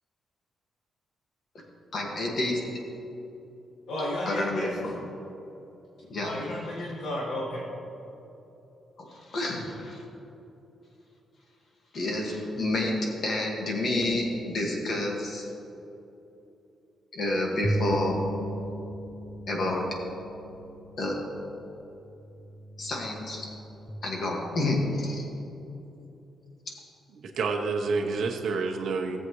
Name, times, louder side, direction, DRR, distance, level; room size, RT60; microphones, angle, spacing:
voice 1, 1.9-2.6 4.3-4.9 6.1-6.4 9.0-10.0 11.9-15.4 17.1-18.2 19.5-19.9 21.0-21.2 22.8-23.5 24.0-25.3, left 2 dB, 45° left, -1 dB, 1.8 m, -29 dB
voice 2, 3.9-4.7 6.2-7.7, left 1 dB, 85° left, -5 dB, 1.7 m, -32 dB
sound 1, 17.6-23.9, right 1 dB, 15° left, 0.7 m, -36 dB
voice 3, 27.2-29.2, right 4 dB, 55° right, 2 dB, 1.0 m, -28 dB
17.5 x 7.6 x 3.1 m, 2.9 s
wide cardioid pair, 165°, 0 cm